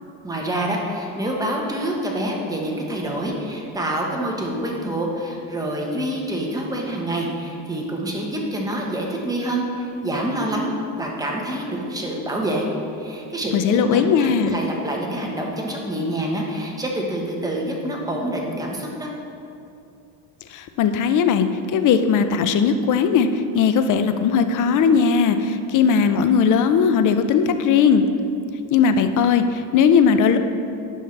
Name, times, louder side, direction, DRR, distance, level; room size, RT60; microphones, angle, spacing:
voice 1, 0.2-12.6 13.0-19.1, right 1 dB, 5° right, -1 dB, 1.1 m, -26 dB
voice 2, 13.5-14.6 20.5-28.0 28.7-30.4, left 6 dB, 40° left, 9 dB, 0.5 m, -18 dB
11.0 x 5.5 x 3.3 m, 2.6 s
cardioid pair, 120°, 49 cm